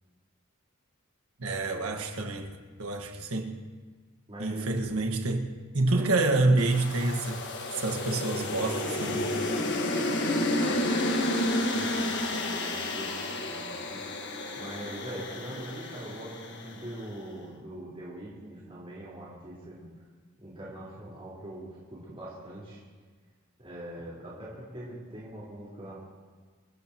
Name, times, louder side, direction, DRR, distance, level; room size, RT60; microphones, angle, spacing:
voice 1, 1.4-3.6 4.4-5.5 5.7-7.4 7.8-9.3, right 2 dB, 90° right, 1.7 m, -28 dB
voice 2, 4.3-4.7 5.9-6.4 10.1-14.0 14.6-19.9 20.4-22.8 23.6-26.0, right 1 dB, 25° right, 4.4 m, -42 dB
sound 1, 6.6-16.9, left 1 dB, 55° left, 1.6 m, -31 dB
28.0 x 13.5 x 3.0 m
head